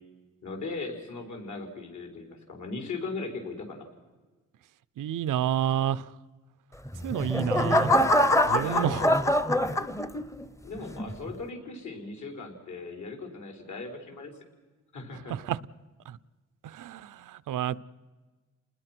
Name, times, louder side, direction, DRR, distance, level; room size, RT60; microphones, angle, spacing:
voice 1, 0.4-3.9 8.6-9.0 10.6-14.3 14.9-15.3, left 3 dB, 65° left, 5.0 m, -38 dB
voice 2, 5.0-6.1 7.0-8.0 8.5-9.0 15.3-15.6 16.1-16.2 16.6-17.8, right 10 dB, 85° right, 0.7 m, -29 dB
sound 1, 6.9-10.4 11.0-11.3, left 1 dB, 10° left, 0.8 m, -24 dB
29.5 x 20.5 x 6.1 m
wide cardioid pair, 120°, 31 cm